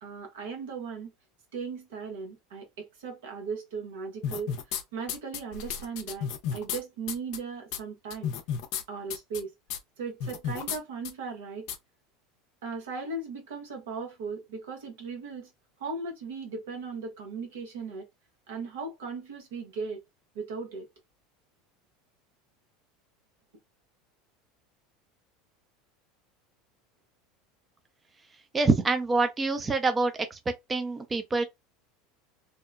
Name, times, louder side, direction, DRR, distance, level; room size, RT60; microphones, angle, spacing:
voice 1, 0.0-1.1 1.5-4.5 4.9-8.3 8.9-9.5 10.0-11.7 12.6-15.5 15.8-18.1 18.5-20.0 20.3-20.9, right 4 dB, 80° right, 0.9 m, -37 dB
sound 1, 4.2-4.8 5.1-6.8 7.1-7.4 7.7-7.8 8.1-8.8 9.1-9.4 9.7-9.8 10.2-10.8 11.1-11.2 11.7-11.8, left 8 dB, 65° left, 0.5 m, -32 dB
voice 2, 28.5-30.4 30.7-31.4, right 3 dB, 20° right, 0.5 m, -26 dB
2.8 x 2.1 x 2.4 m
hypercardioid pair, 95°, 0 cm